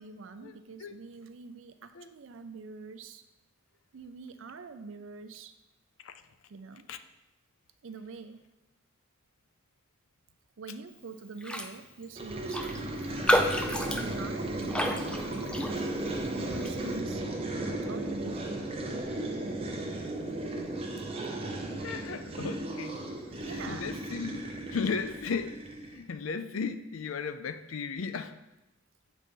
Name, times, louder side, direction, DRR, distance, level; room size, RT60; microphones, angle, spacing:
voice 1, 0.0-3.2 3.9-5.5 6.5-6.9 7.8-8.5 10.6-13.2 13.8-15.7 16.5-17.2 17.9-18.4 23.5-23.9, right 4 dB, 70° right, 10 dB, 0.5 m, -45 dB
Raindrop, 11.4-11.7 12.0-12.1 12.5-16.1 16.5-16.8, equal, 5° left, 0.4 m, -30 dB
sound 1, 12.2-26.0, right 2 dB, 30° right, 0.8 m, -35 dB
voice 2, 21.8-23.0 23.3-28.4, left 5 dB, 80° left, 11 dB, 0.5 m, -36 dB
7.4 x 4.1 x 5.3 m, 0.97 s
head